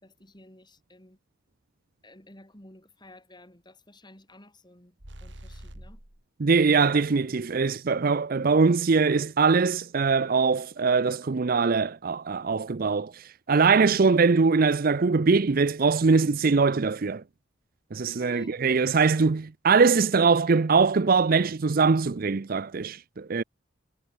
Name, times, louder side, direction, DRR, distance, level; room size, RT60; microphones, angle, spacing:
voice 1, 0.0-1.2 2.0-6.0 18.0-18.5 20.1-20.3, left 1 dB, 20° left, 4.3 m, -52 dB
sound 1, 5.0-6.2, right 1 dB, 65° right, 4.6 m, -45 dB
voice 2, 6.4-17.2 17.9-23.4, right 4 dB, 45° right, 0.5 m, -22 dB
head